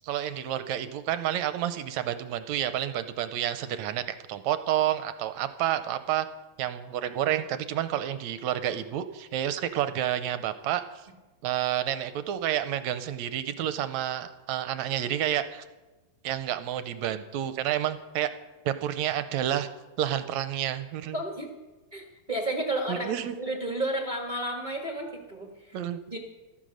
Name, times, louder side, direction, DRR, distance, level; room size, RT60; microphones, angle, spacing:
voice 1, 0.1-4.0 4.3-6.3 6.6-10.8 11.4-15.6 16.2-18.3 18.7-19.7 20.0-21.2 22.9-23.3 25.7-26.0, right 11 dB, 75° right, 11 dB, 1.8 m, -29 dB
voice 2, 21.1-21.5 21.9-25.8 26.1-26.2, right 1 dB, 30° right, 1 dB, 0.9 m, -32 dB
14.0 x 14.0 x 6.4 m, 1.1 s
omnidirectional pair, 3.7 m